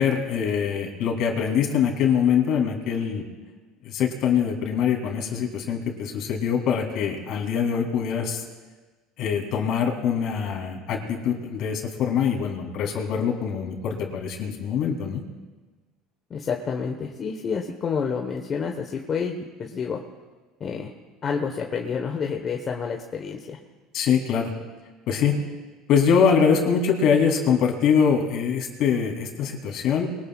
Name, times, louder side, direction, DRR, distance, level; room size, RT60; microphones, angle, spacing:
voice 1, 0.0-3.2 3.8-8.4 9.2-15.2 23.9-24.5 25.1-25.4 25.9-30.1, left 7 dB, 60° left, 1 dB, 2.9 m, -23 dB
voice 2, 16.3-20.0 20.6-20.9 21.2-23.6, left 6 dB, 35° left, 2 dB, 1.1 m, -29 dB
23.0 x 19.0 x 2.4 m, 1.3 s
supercardioid pair, 125°, 0 cm